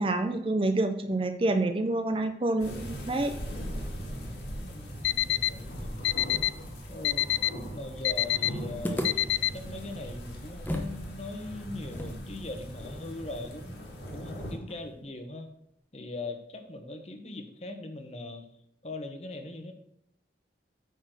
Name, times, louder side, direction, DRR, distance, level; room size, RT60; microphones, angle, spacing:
voice 1, 0.0-3.3, right 2 dB, 30° right, 8 dB, 0.5 m, -27 dB
sound 1, 2.6-14.5, equal, 65° left, 2.3 m, -40 dB
voice 2, 4.1-6.0 6.9-7.3 7.7-9.2 9.5-13.8 14.1-15.5 15.9-18.5 18.8-19.7, left 2 dB, 35° left, 6 dB, 1.0 m, -41 dB
Alarm, 5.0-5.5 6.0-6.5 7.0-7.5 8.0-8.5 9.0-9.5, left 14 dB, 85° left, 0.3 m, -25 dB
sound 2, 8.8-11.0 11.3-11.4 11.9-15.0, equal, 10° left, 0.9 m, -38 dB
9.1 x 4.2 x 6.3 m, 0.73 s
head